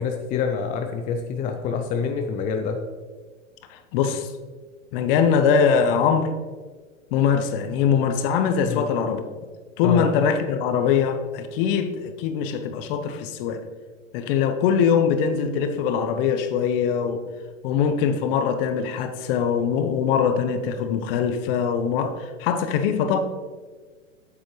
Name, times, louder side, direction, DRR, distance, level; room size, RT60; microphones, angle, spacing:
voice 1, 0.0-2.8 8.7-8.8 9.8-10.1, left 6 dB, 20° left, 4 dB, 0.5 m, -26 dB
voice 2, 3.7-4.3 4.9-6.3 7.1-9.2 9.8-13.6 14.1-17.2 17.6-23.2, left 7 dB, 45° left, 9 dB, 0.9 m, -22 dB
8.5 x 7.5 x 3.1 m, 1.4 s
hypercardioid pair, 120°, 38 cm